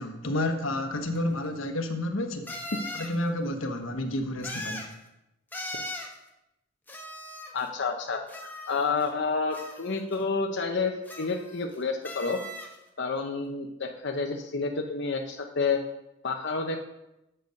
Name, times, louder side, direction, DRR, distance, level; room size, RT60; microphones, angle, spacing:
voice 1, 0.0-2.5 2.9-4.9, left 1 dB, 90° left, 5 dB, 1.2 m, -30 dB
sound 1, 1.2-1.3 2.5-3.2 4.4-4.9 5.5-6.1 6.9-7.7 8.3-9.1 9.5-10.1 11.1-11.7 12.0-12.8, left 1 dB, 10° left, 1.1 m, -39 dB
voice 2, 7.5-10.9 11.2-12.4 13.0-15.8 16.2-16.8, left 4 dB, 60° left, 3 dB, 0.8 m, -29 dB
8.0 x 8.0 x 5.2 m, 0.91 s
head